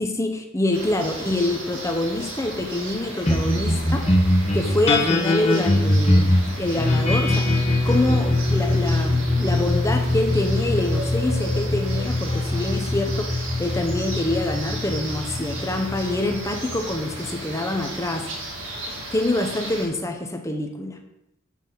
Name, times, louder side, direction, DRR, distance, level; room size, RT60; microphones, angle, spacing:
voice 1, 0.0-4.0 4.5-7.5 7.9-18.3 19.1-21.0, left 1 dB, 15° left, 4 dB, 0.8 m, -26 dB
sound 1, 0.7-19.9, right 2 dB, 90° right, 1.7 m, -35 dB
sound 2, 3.2-17.9, left 1 dB, 35° left, 1.2 m, -22 dB
7.3 x 4.0 x 5.7 m, 0.84 s
head